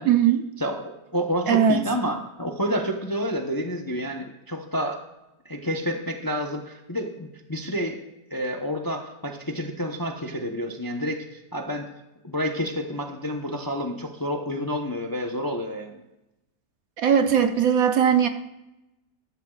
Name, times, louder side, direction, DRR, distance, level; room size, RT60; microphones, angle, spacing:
voice 1, 0.1-0.4 1.5-1.8 17.0-18.3, right 8 dB, 60° right, 8 dB, 1.2 m, -19 dB
voice 2, 0.6-5.0 5.4-8.0 8.3-11.9 12.2-16.0, equal, 20° left, 3 dB, 0.6 m, -29 dB
14.0 x 12.5 x 2.4 m, 0.95 s
omnidirectional pair, 1.8 m